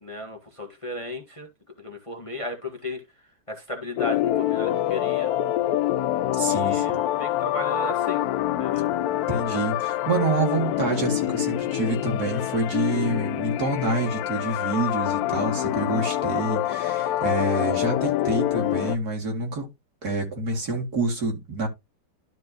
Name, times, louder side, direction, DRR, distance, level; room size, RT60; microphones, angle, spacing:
voice 1, 0.0-1.5 1.8-3.0 3.5-5.3 6.4-8.3 8.6-8.9 16.3-16.6, left 1 dB, 20° left, 1.4 m, -35 dB
sound 1, 4.0-19.0, left 13 dB, 70° left, 1.0 m, -26 dB
voice 2, 6.3-6.9 9.3-19.7 20.0-21.7, right 3 dB, 60° right, 2.9 m, -27 dB
12.5 x 4.5 x 2.9 m
omnidirectional pair, 1.8 m